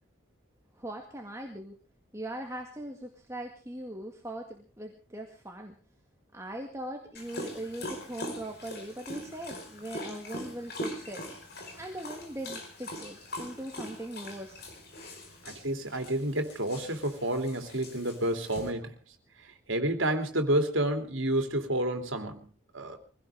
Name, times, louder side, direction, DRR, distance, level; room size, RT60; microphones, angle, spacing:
voice 1, 0.8-1.8 2.1-5.8 6.3-11.2 11.8-14.6, right 1 dB, 15° right, 2 dB, 1.9 m, -40 dB
Dog, 7.1-18.7, left 1 dB, 50° left, 4.9 m, -42 dB
voice 2, 15.4-18.9 19.4-22.5 22.7-23.0, right 1 dB, 80° right, 5 dB, 3.1 m, -30 dB
23.5 x 17.0 x 3.6 m, 0.36 s
head